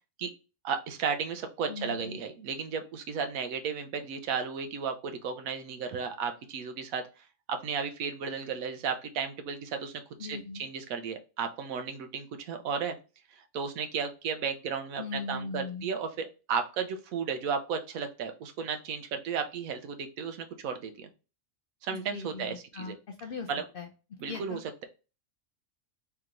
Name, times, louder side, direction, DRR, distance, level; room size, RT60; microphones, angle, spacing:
voice 1, 0.6-7.0 7.5-13.0 13.3-21.1 21.8-23.0 23.5-23.6 24.2-24.8, right 6 dB, 85° right, 7 dB, 1.1 m, -34 dB
voice 2, 1.7-2.2 10.2-10.6 15.0-15.9 21.9-23.5 23.7-23.9 24.3-24.6, left 4 dB, 65° left, 3 dB, 0.5 m, -39 dB
3.4 x 3.0 x 3.7 m, 0.33 s
omnidirectional pair, 1.4 m